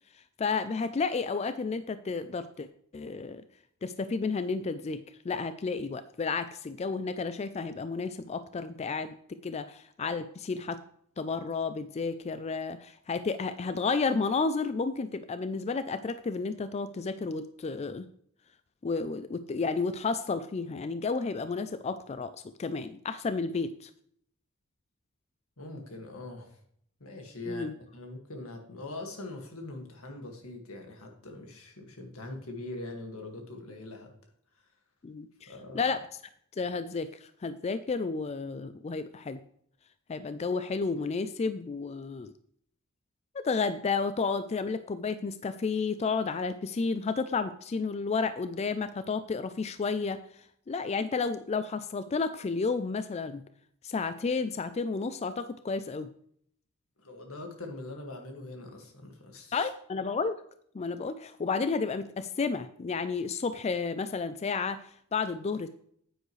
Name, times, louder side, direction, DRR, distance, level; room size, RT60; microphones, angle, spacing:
voice 1, 0.1-2.7 2.9-3.4 3.8-10.8 11.2-18.1 18.8-23.9 27.5-27.7 35.0-36.0 36.5-39.4 40.1-42.3 43.3-53.4 53.8-56.1 59.5-60.4 60.7-65.7, left 4 dB, 30° left, 12 dB, 0.4 m, -32 dB
voice 2, 25.6-26.6 27.0-34.1 35.5-35.9 57.0-59.7, left 2 dB, 85° left, 3 dB, 2.0 m, -42 dB
9.5 x 9.1 x 3.2 m, 0.66 s
head